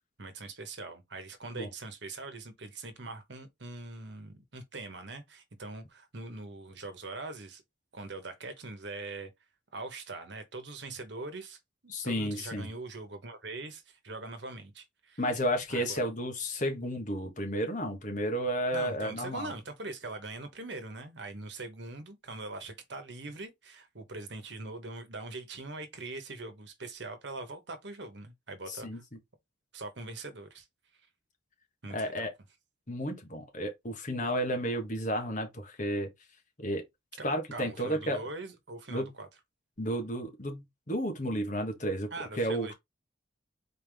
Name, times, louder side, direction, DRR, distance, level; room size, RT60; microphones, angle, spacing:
voice 1, 0.2-7.6 7.9-9.3 9.7-15.2 15.7-16.0 18.7-29.0 29.7-30.7 31.8-32.2 37.2-37.3 37.5-39.3 42.1-42.7, right 3 dB, 65° right, 1.2 m, -42 dB
voice 2, 11.9-12.7 15.2-19.5 28.7-29.0 31.9-32.3 32.9-36.1 36.6-36.8 37.2-38.2 38.9-39.1 39.8-42.1 42.3-42.7, equal, 40° left, 1.4 m, -32 dB
4.2 x 3.6 x 3.5 m
head